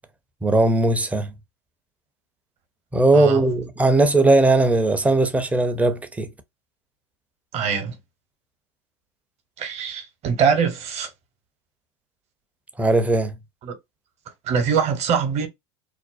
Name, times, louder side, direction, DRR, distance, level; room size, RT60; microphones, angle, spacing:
voice 1, 0.4-1.3 2.9-6.3 12.8-13.3, right 2 dB, 10° right, 0.5 m, -18 dB
voice 2, 7.5-8.0 9.6-11.1 13.6-13.8 14.4-15.5, right 6 dB, 40° right, 0.8 m, -23 dB
2.5 x 2.0 x 2.4 m
hypercardioid pair, 95°, 16 cm